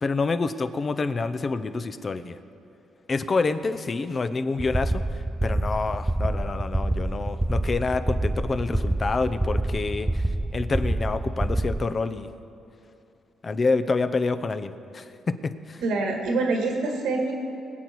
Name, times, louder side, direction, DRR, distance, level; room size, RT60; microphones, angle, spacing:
voice 1, 0.0-2.4 3.1-5.0 5.4-10.2 10.5-12.3 13.4-15.1 15.4-15.8, left 3 dB, 35° left, 11 dB, 0.7 m, -27 dB
sound 1, 4.6-11.9, right 1 dB, 10° right, 0.5 m, -27 dB
voice 2, 15.8-17.3, right 3 dB, 85° right, 1 dB, 2.2 m, -25 dB
23.0 x 8.1 x 4.7 m, 2.8 s
cardioid pair, 90°, 0 cm